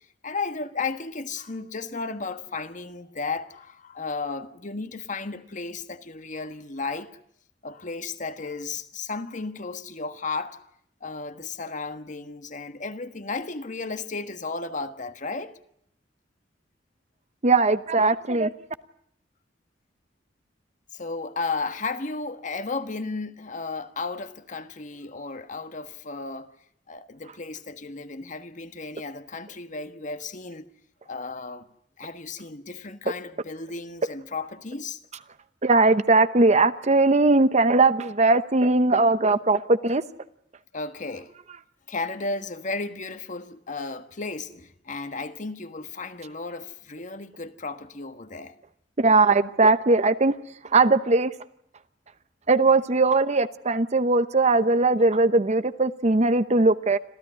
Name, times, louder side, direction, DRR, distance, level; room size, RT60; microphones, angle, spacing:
voice 1, 0.2-7.1 7.6-10.6 11.0-15.6 20.9-26.5 26.9-30.7 31.1-31.7 32.0-35.0 40.7-41.3 41.9-48.5, left 3 dB, 45° left, 1.4 m, -34 dB
voice 2, 17.4-18.5 35.6-40.0 49.0-50.3 50.7-51.3 52.5-57.0, right 3 dB, 40° right, 0.9 m, -20 dB
26.5 x 16.0 x 9.9 m
head